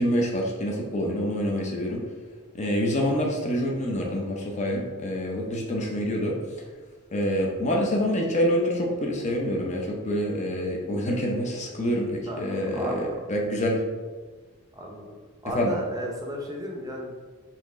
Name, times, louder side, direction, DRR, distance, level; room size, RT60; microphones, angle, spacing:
voice 1, 0.0-2.0 2.5-6.4 7.1-13.8 15.5-15.7, equal, 30° left, 0 dB, 0.6 m, -26 dB
voice 2, 14.7-15.1 15.4-17.1, equal, 15° right, 0 dB, 0.6 m, -34 dB
4.2 x 3.0 x 3.6 m, 1.5 s
head